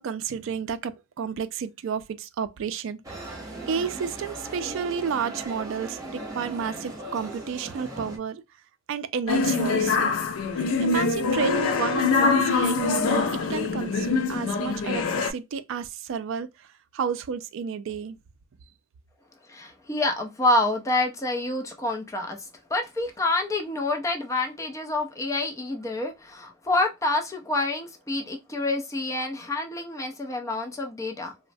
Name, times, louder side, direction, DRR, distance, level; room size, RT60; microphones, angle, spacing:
voice 1, 0.0-3.3 3.7-8.4 8.9-10.1 10.5-16.5 16.9-18.2, right 6 dB, 65° right, 0.3 m, -31 dB
sound 1, 3.0-8.2, right 2 dB, 15° right, 0.7 m, -38 dB
sound 2, 9.3-15.3, left 4 dB, 80° left, 0.4 m, -24 dB
voice 2, 19.5-22.4 22.7-31.3, left 2 dB, 15° left, 0.5 m, -27 dB
3.0 x 2.1 x 2.5 m
head